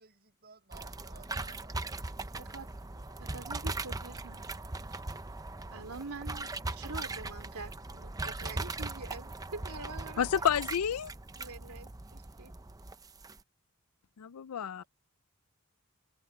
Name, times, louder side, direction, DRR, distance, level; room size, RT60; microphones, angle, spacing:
voice 1, 0.0-3.3 14.6-14.9, right 4 dB, 45° right, 7.3 m, -61 dB
sound 1, 0.7-13.4, right 2 dB, 15° right, 0.6 m, -40 dB
voice 2, 2.4-2.7 3.2-4.6 4.9-5.0 5.7-10.3 11.4-12.5, right 3 dB, 80° right, 2.7 m, -45 dB
voice 3, 10.2-11.1 14.2-14.8, left 8 dB, 80° left, 0.4 m, -30 dB
head